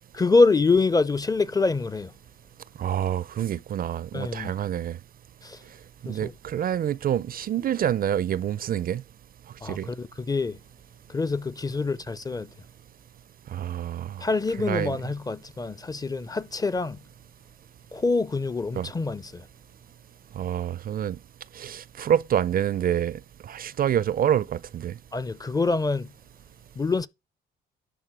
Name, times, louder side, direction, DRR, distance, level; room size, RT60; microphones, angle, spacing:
voice 1, 0.2-2.1 4.1-4.5 5.4-5.6 6.1-6.3 9.6-10.6 11.1-12.5 14.2-17.0 17.9-19.4 25.1-26.1 26.8-27.1, left 3 dB, 20° left, 0.5 m, -25 dB
voice 2, 2.8-5.0 6.0-9.0 9.6-9.9 13.5-14.2 14.6-15.0 18.8-18.9 20.4-21.2 21.6-24.9, right 10 dB, 45° right, 0.4 m, -27 dB
11.0 x 3.9 x 6.1 m
cardioid pair, 90°, 20 cm